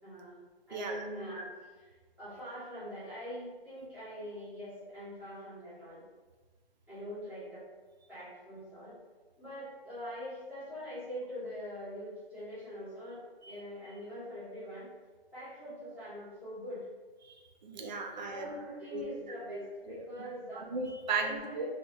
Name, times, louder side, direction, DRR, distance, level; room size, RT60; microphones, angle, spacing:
voice 1, 0.0-6.0 6.9-7.6 8.1-9.0 9.4-14.9 15.3-16.8 18.3-20.7 21.2-21.7, equal, 5° right, -15 dB, 1.0 m, -43 dB
voice 2, 17.6-18.5 18.9-19.0 19.5-19.6 20.6-21.6, right 4 dB, 45° right, 3 dB, 0.5 m, -35 dB
2.7 x 2.7 x 3.2 m, 1.3 s
hypercardioid pair, 155°, 31 cm